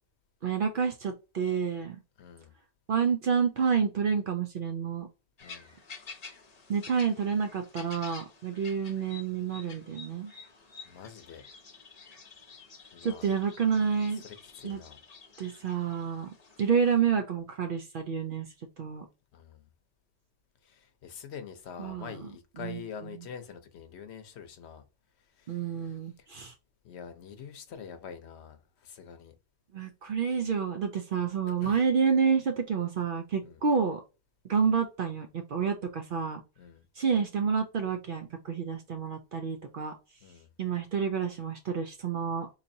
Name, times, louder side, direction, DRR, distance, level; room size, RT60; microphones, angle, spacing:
voice 1, 0.4-2.0 2.9-5.1 6.7-10.3 13.0-14.2 14.6-14.8 15.4-16.3 16.6-19.1 21.8-22.3 22.6-22.8 23.1-23.2 25.5-26.5 29.7-34.0 34.4-36.4 37.0-39.9 40.6-42.5, right 6 dB, 60° right, 0.6 m, -29 dB
voice 2, 2.2-2.5 5.4-5.7 10.8-11.4 12.9-13.3 14.2-15.0 19.3-19.7 20.6-24.8 25.2-26.3 26.8-29.3 31.5-31.8 33.4-33.6 36.6-36.9 40.2-40.5, left 7 dB, 70° left, 0.9 m, -45 dB
sound 1, 5.4-17.0, left 5 dB, 40° left, 0.7 m, -50 dB
4.1 x 2.8 x 2.6 m
omnidirectional pair, 1.2 m